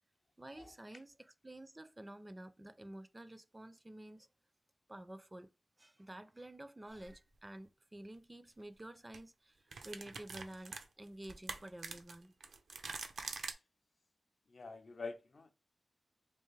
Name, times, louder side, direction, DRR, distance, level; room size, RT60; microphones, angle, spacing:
voice 1, 0.4-4.3 4.9-5.5 5.8-12.4, right 1 dB, 20° right, 0.4 m, -51 dB
sound 1, 7.0-7.1 8.6-8.8 9.1-9.2 9.7-13.5, right 4 dB, 90° right, 0.5 m, -45 dB
voice 2, 14.5-15.5, left 4 dB, 60° left, 0.5 m, -46 dB
3.3 x 2.6 x 3.2 m
wide cardioid pair, 75°, 0 cm